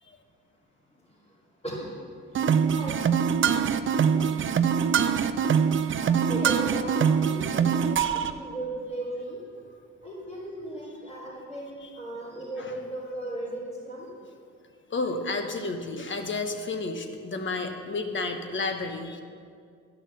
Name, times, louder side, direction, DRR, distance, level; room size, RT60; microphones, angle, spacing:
sound 1, 2.3-8.3, right 7 dB, 40° right, 0.5 m, -23 dB
voice 1, 2.7-3.0 6.0-9.4 10.0-14.1, right 1 dB, 20° left, -11 dB, 3.2 m, -36 dB
voice 2, 14.9-19.2, left 3 dB, 40° left, 6 dB, 1.2 m, -31 dB
12.0 x 6.1 x 6.7 m, 2.2 s
cardioid pair, 90°, 30 cm